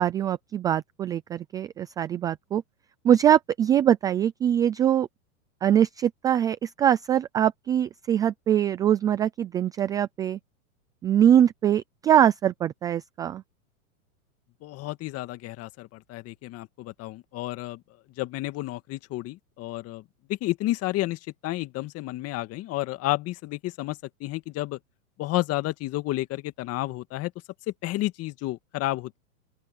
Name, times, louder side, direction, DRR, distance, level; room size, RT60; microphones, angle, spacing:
voice 1, 0.0-2.6 3.0-5.1 5.6-10.4 11.0-13.4, right 10 dB, 10° right, 0.3 m, -23 dB
voice 2, 14.6-17.8 18.2-20.0 20.3-24.8 25.2-27.3 27.8-29.2, left 17 dB, 35° left, 2.0 m, -31 dB
open air
hypercardioid pair, 130°, 44 cm